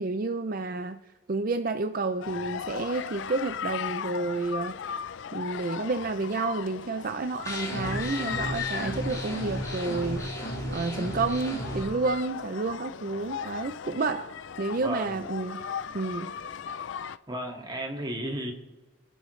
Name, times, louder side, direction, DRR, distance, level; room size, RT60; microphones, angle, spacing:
voice 1, 0.0-4.8 5.3-10.3 10.7-15.6 15.9-16.3, right 3 dB, 45° right, 9 dB, 0.5 m, -30 dB
sound 1, 2.2-17.2, left 7 dB, 65° left, 0.4 m, -37 dB
sound 2, 7.5-11.8, equal, 15° left, 5.5 m, -34 dB
voice 2, 14.8-15.1 17.3-18.5, right 1 dB, 20° right, 1 dB, 2.1 m, -33 dB
28.0 x 11.0 x 3.2 m, 1.2 s
head